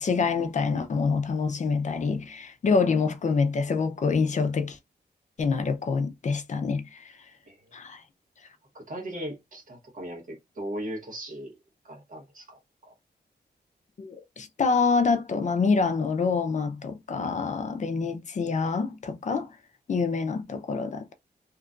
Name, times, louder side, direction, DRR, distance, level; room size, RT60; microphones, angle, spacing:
voice 1, 0.0-4.8 5.4-7.1 7.7-8.0 14.0-19.5 19.9-21.1, left 4 dB, 45° left, 0.5 m, -26 dB
voice 2, 8.7-11.5 11.8-12.9, right 1 dB, 50° right, 1.2 m, -38 dB
2.9 x 2.3 x 2.4 m
wide cardioid pair, 135°, 17 cm